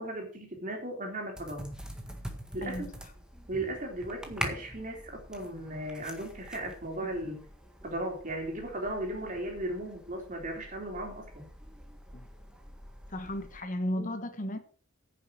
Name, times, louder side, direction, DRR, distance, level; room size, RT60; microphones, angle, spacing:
voice 1, 0.0-1.7 2.5-2.9 3.5-7.5 7.8-11.5 14.0-14.1, right 1 dB, 40° right, 3.7 m, -36 dB
sound 1, 1.3-13.6, equal, 5° right, 1.7 m, -44 dB
voice 2, 13.1-14.6, left 1 dB, 40° left, 1.3 m, -34 dB
10.0 x 7.2 x 6.2 m
head